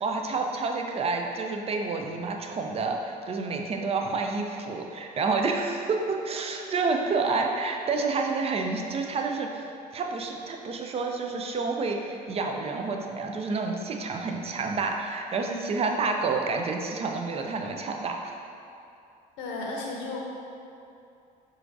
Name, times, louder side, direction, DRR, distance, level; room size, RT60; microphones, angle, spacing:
voice 1, 0.0-9.6 9.9-18.3, right 4 dB, 30° right, 3 dB, 0.4 m, -29 dB
voice 2, 19.4-20.2, left 3 dB, 70° left, -2 dB, 0.7 m, -33 dB
4.3 x 2.5 x 2.5 m, 2.6 s
hypercardioid pair, 60°, 21 cm